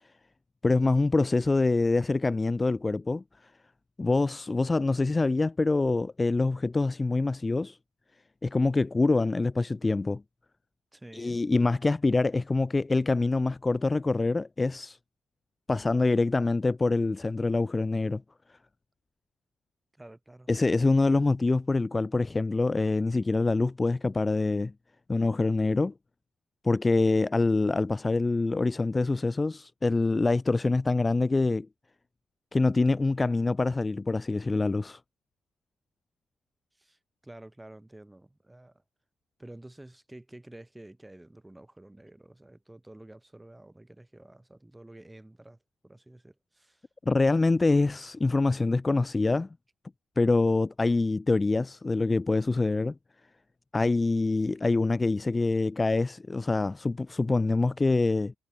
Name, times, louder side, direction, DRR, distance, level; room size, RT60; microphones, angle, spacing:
voice 1, 0.6-3.2 4.0-7.8 8.4-10.2 11.1-15.0 15.7-18.2 20.5-24.7 25.1-25.9 26.6-31.7 32.5-35.0 47.1-49.5 50.2-52.9 53.7-58.3, left 3 dB, 20° left, 0.5 m, -25 dB
voice 2, 10.9-11.4 20.0-20.5 36.8-38.8 39.4-45.6 45.8-46.8, right 1 dB, 10° right, 2.6 m, -50 dB
cardioid pair, 90°, 0 cm